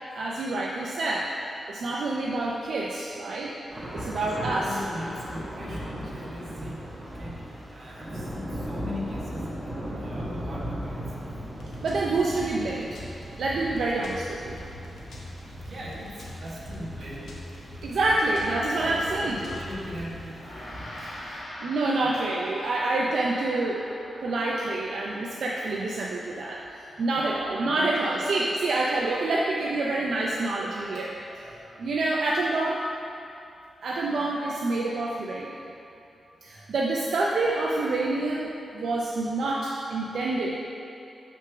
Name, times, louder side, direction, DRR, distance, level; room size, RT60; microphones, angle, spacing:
voice 1, 0.1-1.3 1.7-3.5 3.9-4.7 11.8-13.0 13.4-14.6 17.8-19.3 21.6-23.9 24.2-31.1 31.8-32.9 33.8-35.6 36.4-40.6, right 2 dB, 70° right, -2 dB, 0.4 m, -27 dB
Thunder / Rain, 3.7-21.4, equal, 15° right, 0.9 m, -38 dB
voice 2, 4.1-11.3 15.6-17.5 17.8-18.2 18.7-21.4 22.0-22.1 26.9-28.2 31.2-31.9 36.4-36.7, left 1 dB, 45° right, -5 dB, 1.3 m, -41 dB
sound 1, 11.6-20.2, left 1 dB, 80° left, 0.9 m, -43 dB
Gong, 20.3-29.8, left 1 dB, 60° left, 1.5 m, -45 dB
5.9 x 3.5 x 5.8 m, 2.7 s
wide cardioid pair, 140°, 0 cm